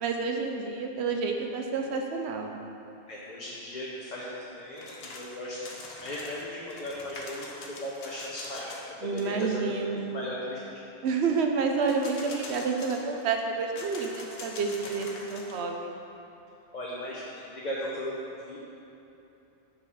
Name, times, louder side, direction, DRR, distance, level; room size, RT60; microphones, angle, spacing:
voice 1, 0.0-2.5 9.0-10.0 11.0-15.9, right 4 dB, 85° right, 3 dB, 1.0 m, -29 dB
voice 2, 3.1-5.7 6.0-8.7 9.0-9.7 10.1-10.8 16.7-18.6, left 1 dB, 45° left, -6 dB, 1.0 m, -37 dB
sound 1, 4.8-5.4 5.6-8.9 9.2-9.3 11.8-13.2 13.8-15.6, left 2 dB, 70° left, 1.1 m, -43 dB
6.4 x 5.9 x 4.8 m, 3.0 s
omnidirectional pair, 1.1 m